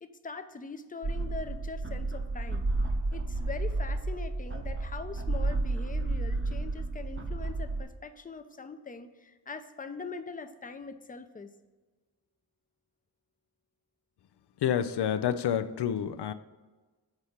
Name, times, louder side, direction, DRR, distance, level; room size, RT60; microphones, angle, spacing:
voice 1, 0.0-2.6 3.1-11.5, left 4 dB, 20° left, 8 dB, 0.5 m, -42 dB
sound 1, 1.0-7.8, right 2 dB, 30° right, 0.8 m, -31 dB
voice 2, 14.6-16.3, left 9 dB, 80° left, 11 dB, 0.5 m, -28 dB
6.1 x 4.2 x 5.0 m, 1.3 s
wide cardioid pair, 70°, 40 cm